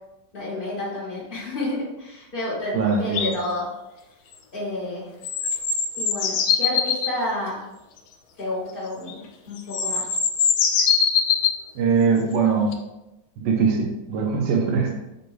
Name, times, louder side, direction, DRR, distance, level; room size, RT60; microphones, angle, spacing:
voice 1, 0.3-3.7 4.5-5.1 6.0-7.6 8.4-9.2 9.5-10.1, left 1 dB, 35° left, -9 dB, 0.9 m, -30 dB
voice 2, 2.7-3.3 11.7-12.8 13.4-14.9, right 5 dB, 70° right, 0 dB, 1.2 m, -21 dB
sound 1, 3.1-3.3 5.2-7.1 9.1-9.2 9.6-11.6 12.7-12.8, left 6 dB, 85° left, 1.4 m, -22 dB
5.2 x 2.2 x 4.6 m, 0.95 s
omnidirectional pair, 2.0 m